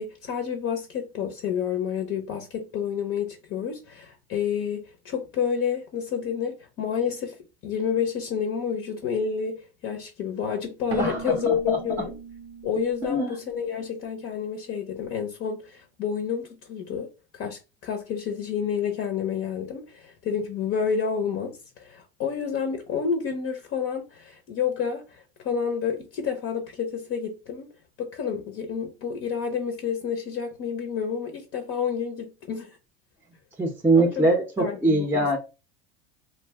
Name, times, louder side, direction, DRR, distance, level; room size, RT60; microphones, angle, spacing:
voice 1, 0.0-7.4 7.6-12.1 12.6-17.1 17.3-27.7 28.0-32.8 33.9-34.3 34.6-35.4, left 7 dB, 45° left, 0.6 m, -29 dB
Keyboard (musical), 10.9-14.5, right 7 dB, 75° right, 0.7 m, -40 dB
voice 2, 11.0-11.8 13.0-13.4 33.6-35.4, right 2 dB, 5° right, 0.6 m, -23 dB
2.5 x 2.1 x 3.4 m
supercardioid pair, 105°, 30 cm